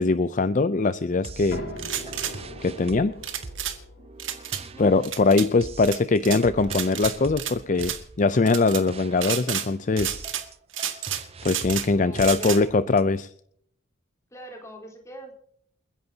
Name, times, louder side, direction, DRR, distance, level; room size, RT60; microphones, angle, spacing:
voice 1, 0.0-1.6 2.6-3.1 4.8-10.2 11.4-13.3, left 3 dB, 40° left, 13 dB, 0.5 m, -22 dB
sound 1, 1.2-13.0, right 3 dB, 30° right, 0.6 m, -43 dB
sound 2, 1.5-7.1, left 1 dB, 70° left, 4.5 m, -42 dB
sound 3, 1.8-2.3 3.2-3.8 4.2-4.6 5.0-5.5 5.8-6.4 6.7-7.5 7.8-8.0 8.5-8.8 9.2-9.7 10.0-10.5 10.7-11.9 12.2-12.6, right 10 dB, 70° right, 2.0 m, -30 dB
voice 2, 12.0-12.7 14.3-15.3, equal, 15° left, 2 dB, 3.9 m, -42 dB
29.0 x 10.5 x 2.8 m, 0.65 s
head